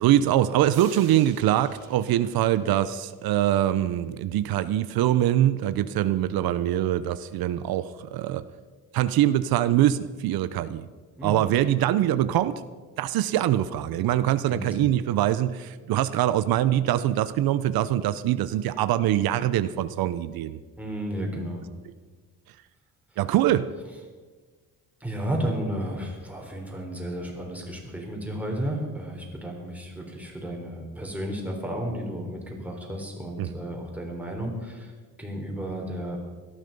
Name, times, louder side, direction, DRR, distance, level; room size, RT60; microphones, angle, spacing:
voice 1, 0.0-8.4 8.9-10.9 11.2-12.6 13.0-20.6 23.2-23.7 33.4-33.5, right 12 dB, 80° right, 14 dB, 0.7 m, -23 dB
sound 1, 0.7-3.4, right 6 dB, 60° right, 3.3 m, -48 dB
voice 2, 20.8-21.6 25.0-36.2, right 1 dB, 5° right, 0 dB, 3.7 m, -33 dB
17.5 x 13.0 x 5.3 m, 1.4 s
cardioid pair, 130°, 35 cm